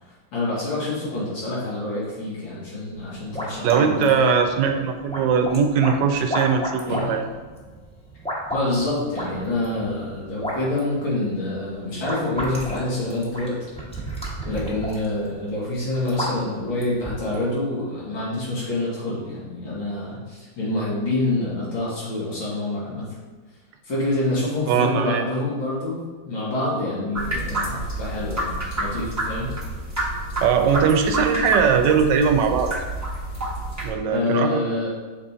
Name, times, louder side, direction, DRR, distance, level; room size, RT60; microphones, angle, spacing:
voice 1, 0.3-4.2 6.9-7.1 8.5-13.6 14.4-23.1 23.8-26.0 26.3-29.5 34.1-34.9, left 2 dB, 85° left, -7 dB, 2.8 m, -26 dB
sound 1, 2.9-17.5, equal, 5° left, 0.9 m, -34 dB
voice 2, 3.6-7.2 24.7-25.2 30.4-32.7 33.8-34.6, right 6 dB, 75° right, 6 dB, 1.2 m, -20 dB
sound 2, 27.1-33.9, right 1 dB, 15° right, 0.6 m, -29 dB
6.6 x 4.3 x 3.6 m, 1.4 s
omnidirectional pair, 2.1 m